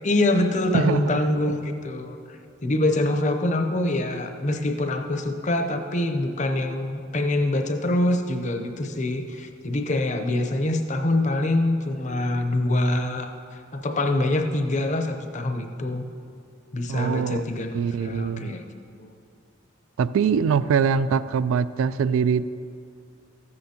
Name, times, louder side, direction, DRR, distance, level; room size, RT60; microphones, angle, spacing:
voice 1, 0.0-16.0 16.7-18.6 19.0-19.1, left 1 dB, 35° left, 5 dB, 0.7 m, -25 dB
voice 2, 0.7-1.2 16.9-17.4 17.7-18.5 20.0-22.5, right 6 dB, 90° right, 15 dB, 0.3 m, -23 dB
14.0 x 9.6 x 2.9 m, 2.5 s
head